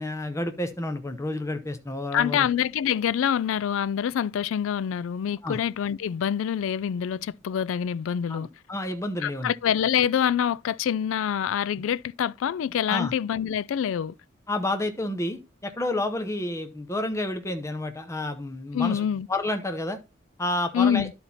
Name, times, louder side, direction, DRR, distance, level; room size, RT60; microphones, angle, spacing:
voice 1, 0.0-2.5 5.4-5.6 8.3-9.5 12.9-13.1 14.5-20.0 20.4-21.1, left 1 dB, 15° left, 0.7 m, -30 dB
voice 2, 2.1-8.5 9.2-14.1 18.7-19.3 20.7-21.1, left 8 dB, 70° left, 0.3 m, -26 dB
11.5 x 4.3 x 4.1 m
head